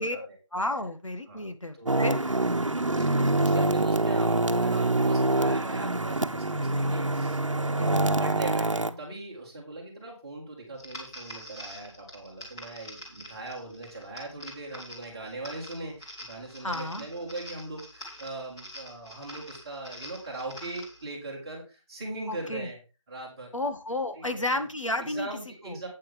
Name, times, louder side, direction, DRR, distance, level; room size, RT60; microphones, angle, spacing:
voice 1, 0.0-0.4 1.3-1.5 1.7-2.1 3.0-22.8 23.1-23.5 24.2-24.6 25.0-25.9, right 2 dB, 10° right, -5 dB, 1.8 m, -40 dB
voice 2, 0.5-2.2 7.8-8.2 16.6-17.1 22.3-22.7 23.5-25.3 25.7-25.8, left 1 dB, 75° left, 7 dB, 1.8 m, -32 dB
sound 1, 1.9-8.9, right 2 dB, 70° right, 1.0 m, -25 dB
sound 2, 10.8-21.0, equal, 10° left, 1.6 m, -45 dB
8.8 x 8.7 x 3.5 m, 0.30 s
figure-of-eight pair, 170°, 17 cm